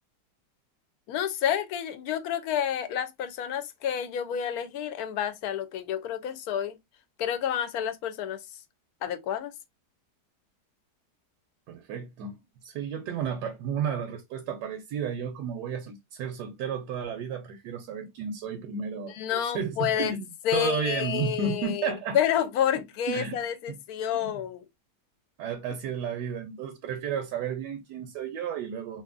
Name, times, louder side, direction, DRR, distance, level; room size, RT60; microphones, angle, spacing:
voice 1, 1.1-6.8 7.2-8.4 9.0-9.5 19.1-20.1 20.4-24.7, left 9 dB, 70° left, 1.0 m, -29 dB
voice 2, 11.7-12.4 12.6-22.2 23.1-23.8 24.2-24.3 25.4-29.0, right 7 dB, 85° right, 1.2 m, -33 dB
2.8 x 2.7 x 2.4 m
omnidirectional pair, 1.8 m